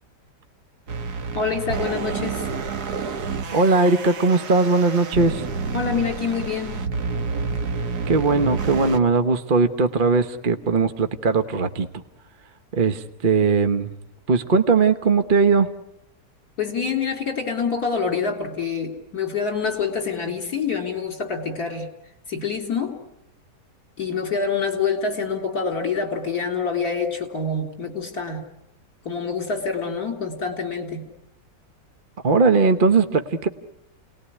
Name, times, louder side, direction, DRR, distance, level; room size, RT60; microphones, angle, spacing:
sound 1, 0.9-9.0, right 4 dB, 65° right, 1.8 m, -29 dB
voice 1, 1.3-2.5 5.7-6.9 16.6-21.9 22.3-23.0 24.0-28.5 29.0-31.1, left 5 dB, 60° left, 4 dB, 4.1 m, -26 dB
voice 2, 3.5-5.5 8.1-11.9 12.7-13.9 14.3-15.7 32.2-33.5, right 4 dB, 35° right, 8 dB, 1.1 m, -19 dB
30.0 x 20.0 x 10.0 m, 0.85 s
omnidirectional pair, 1.8 m